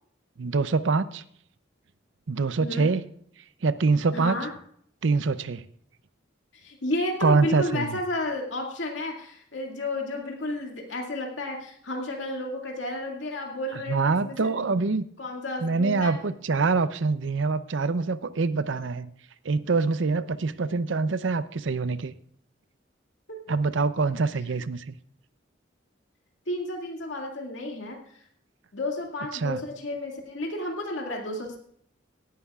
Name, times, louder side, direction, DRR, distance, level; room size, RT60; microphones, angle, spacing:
voice 1, 0.4-1.2 2.3-3.0 3.6-4.4 5.0-5.6 7.2-8.0 13.9-15.0 15.6-19.1 19.4-22.1 23.5-24.9 29.3-29.6, right 4 dB, 85° right, 14 dB, 0.6 m, -25 dB
voice 2, 2.6-2.9 4.1-4.5 6.5-14.8 15.2-16.1 26.5-28.2 28.7-31.6, left 1 dB, 80° left, 1 dB, 2.2 m, -32 dB
18.0 x 11.0 x 2.4 m, 0.63 s
head